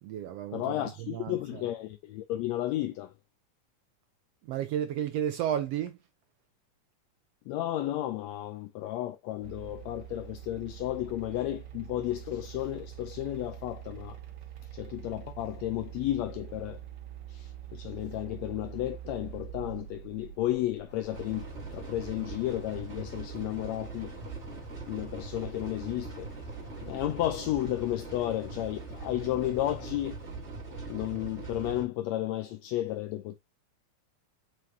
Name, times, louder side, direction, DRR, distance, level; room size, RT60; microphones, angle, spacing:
voice 1, 0.0-1.7 4.5-6.0, right 10 dB, 80° right, 1.4 m, -33 dB
voice 2, 0.5-3.1 7.5-14.2 14.7-16.8 17.3-24.2 24.9-26.3 26.8-30.2 30.9-33.4, left 14 dB, 80° left, 1.5 m, -33 dB
sound 1, 9.4-21.7, right 11 dB, 65° right, 1.1 m, -45 dB
sound 2, 20.9-30.4, left 1 dB, 25° left, 2.7 m, -56 dB
sound 3, 21.1-31.8, right 3 dB, 30° right, 1.4 m, -41 dB
8.0 x 4.7 x 2.7 m
omnidirectional pair, 3.6 m